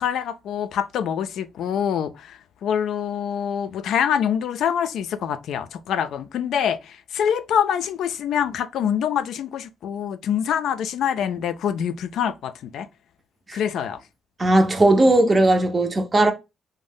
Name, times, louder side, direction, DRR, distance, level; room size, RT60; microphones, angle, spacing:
voice 1, 0.0-12.9 13.5-14.0, left 8 dB, 75° left, 0.3 m, -25 dB
voice 2, 14.4-16.3, right 2 dB, 25° right, 0.4 m, -17 dB
2.6 x 2.1 x 3.3 m
cardioid pair, 90°, 0 cm